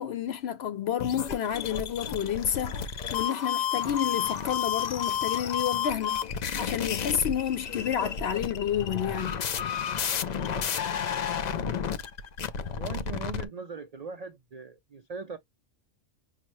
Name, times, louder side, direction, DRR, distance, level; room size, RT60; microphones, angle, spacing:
voice 1, 0.0-6.2 6.6-9.4, left 9 dB, 65° left, 0.7 m, -30 dB
sound 1, 1.0-13.5, left 7 dB, 85° left, 0.3 m, -31 dB
voice 2, 12.7-15.4, right 4 dB, 85° right, 0.3 m, -40 dB
5.8 x 2.0 x 2.9 m
omnidirectional pair, 1.4 m